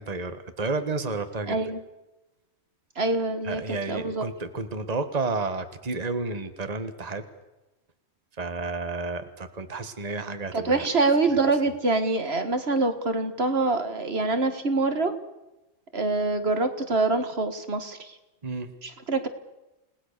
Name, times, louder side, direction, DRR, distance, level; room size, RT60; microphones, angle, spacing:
voice 1, 0.0-1.6 3.4-7.2 8.4-10.9 18.4-18.7, right 3 dB, 35° right, 9 dB, 1.6 m, -31 dB
voice 2, 1.5-1.8 3.0-3.6 3.9-4.2 10.5-15.1 15.9-18.1 18.8-19.3, right 3 dB, 65° right, 9 dB, 2.0 m, -25 dB
29.5 x 19.0 x 6.7 m, 1.0 s
omnidirectional pair, 1.1 m